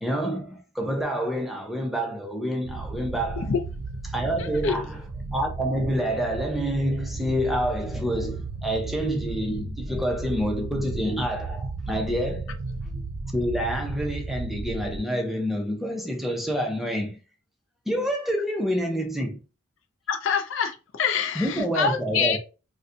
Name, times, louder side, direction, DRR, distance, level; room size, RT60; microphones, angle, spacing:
voice 1, 0.0-3.5 4.0-5.0 5.3-12.6 12.9-13.0 13.3-17.2 17.9-19.4 21.3-22.4, equal, ahead, 0.6 m, -28 dB
sound 1, 2.6-15.0, right 3 dB, 60° right, 0.4 m, -34 dB
voice 2, 20.1-22.4, left 6 dB, 65° left, 0.4 m, -25 dB
4.0 x 2.2 x 2.5 m
head